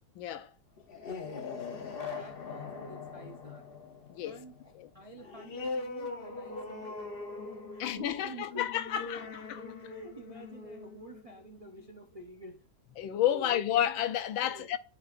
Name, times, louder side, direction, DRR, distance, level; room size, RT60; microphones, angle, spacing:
voice 1, 0.1-0.5 4.1-4.4 4.7-4.9 7.8-9.6 13.0-14.8, left 11 dB, 90° left, 1.5 m, -31 dB
sound 1, 0.8-12.0, left 4 dB, 45° left, 0.8 m, -42 dB
voice 2, 1.1-3.7 4.2-7.4 7.7-9.1 9.7-12.6 13.3-13.5 13.8-14.0 14.4-14.7, right 2 dB, 70° right, 0.3 m, -49 dB
12.5 x 4.7 x 2.5 m
omnidirectional pair, 2.1 m